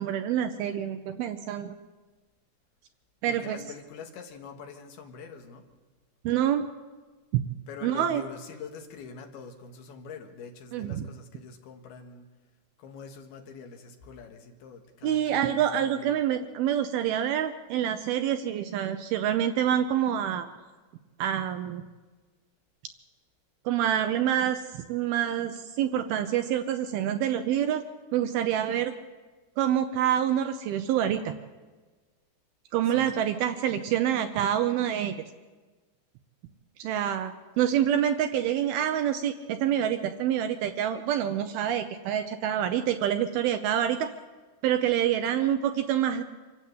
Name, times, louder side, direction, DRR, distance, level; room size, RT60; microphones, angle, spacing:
voice 1, 0.0-1.8 3.2-3.6 6.3-6.7 7.8-8.2 10.7-11.1 15.0-20.5 21.2-21.8 23.7-27.8 28.1-28.9 29.6-31.3 32.7-35.1 36.8-44.1 44.6-46.2, right 10 dB, 75° right, 8 dB, 2.4 m, -27 dB
voice 2, 3.3-5.7 7.7-12.3 12.8-16.2 32.8-33.2, left 5 dB, 70° left, 4 dB, 3.3 m, -45 dB
25.5 x 12.5 x 8.5 m, 1.3 s
omnidirectional pair, 5.0 m